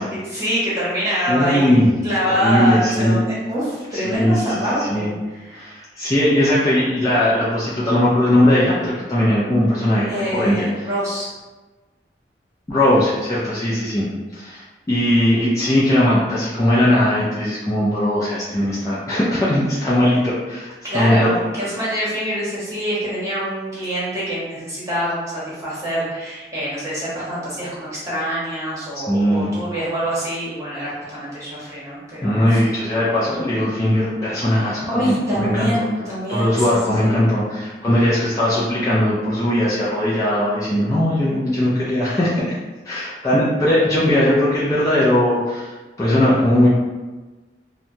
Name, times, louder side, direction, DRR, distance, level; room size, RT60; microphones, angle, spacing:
voice 1, 0.2-5.7 10.1-11.3 20.8-32.6 34.9-36.7 37.0-37.2, equal, 15° right, -9 dB, 1.0 m, -25 dB
voice 2, 1.3-1.9 2.3-3.2 3.9-5.1 5.5-10.7 12.7-14.1 14.3-21.3 28.9-29.5 32.2-35.8 36.3-42.4 42.8-45.7 46.0-46.7, left 1 dB, 20° left, -9 dB, 0.4 m, -19 dB
2.8 x 2.2 x 2.6 m, 1.2 s
head